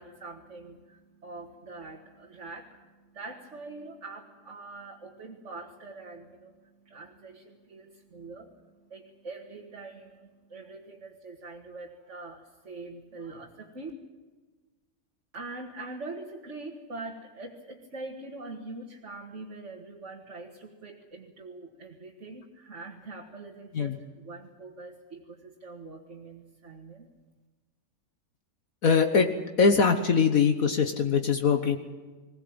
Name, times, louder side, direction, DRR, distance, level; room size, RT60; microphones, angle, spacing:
voice 1, 0.0-13.9 15.3-27.1, right 3 dB, 50° right, 0 dB, 2.3 m, -44 dB
voice 2, 28.8-29.3 29.6-31.8, left 5 dB, 65° left, 7 dB, 1.6 m, -22 dB
21.0 x 19.0 x 8.9 m, 1.3 s
omnidirectional pair, 1.6 m